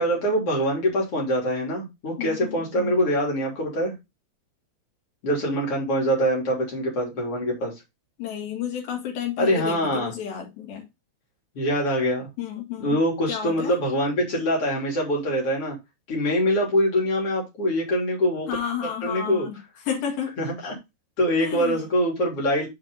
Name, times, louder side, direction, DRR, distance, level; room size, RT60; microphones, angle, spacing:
voice 1, 0.0-3.9 5.2-7.7 9.4-10.1 11.6-12.3 12.8-15.8 16.1-18.5 19.0-19.5 20.4-20.7 21.2-22.7, equal, 35° left, 3.5 m, -24 dB
voice 2, 2.2-2.9 8.2-10.9 12.4-13.0 13.3-13.8 18.5-20.4 21.4-21.9, left 8 dB, 60° left, 3.2 m, -31 dB
8.0 x 5.1 x 4.0 m
omnidirectional pair, 5.7 m